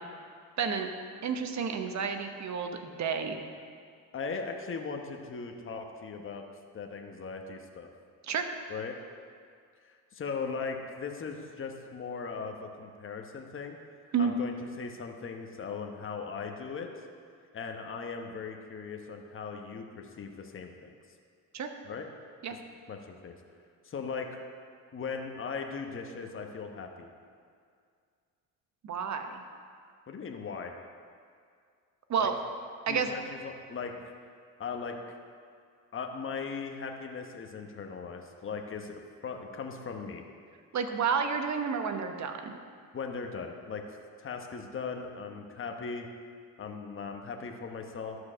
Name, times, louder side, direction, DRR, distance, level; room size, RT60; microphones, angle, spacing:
voice 1, 0.6-0.9 1.2-3.4 8.2-8.4 14.1-14.3 21.5-21.7 22.4-22.6 28.8-29.4 32.1-32.3 32.9-33.1 40.7-42.5, right 6 dB, 50° right, 6 dB, 1.1 m, -30 dB
voice 2, 4.1-6.4 6.7-7.9 8.7-9.0 9.8-13.8 14.2-16.9 17.5-20.9 21.8-22.1 22.9-23.3 23.8-24.3 24.9-27.1 30.1-30.7 32.2-32.3 32.9-33.9 34.6-35.0 35.9-40.2 42.9-43.8 44.2-46.1 46.6-48.2, left 5 dB, 35° left, 3 dB, 1.1 m, -38 dB
12.0 x 4.8 x 6.3 m, 2.1 s
supercardioid pair, 85°, 36 cm